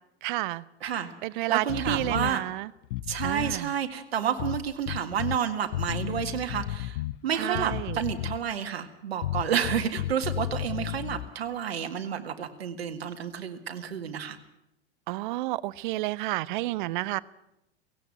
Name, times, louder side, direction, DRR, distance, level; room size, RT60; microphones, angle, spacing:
voice 1, 0.2-0.6 1.2-2.7 3.2-3.7 7.3-8.0 15.1-17.2, right 19 dB, 50° right, 21 dB, 0.8 m, -30 dB
voice 2, 0.8-2.4 3.1-14.4, right 8 dB, 70° right, 7 dB, 1.9 m, -30 dB
sound 1, 1.7-2.4 2.8-3.6 4.4-5.4 5.7-7.2 7.5-8.5 9.2-11.3, left 14 dB, 55° left, 0.7 m, -33 dB
17.5 x 16.5 x 9.0 m, 0.86 s
figure-of-eight pair, 90°, 32 cm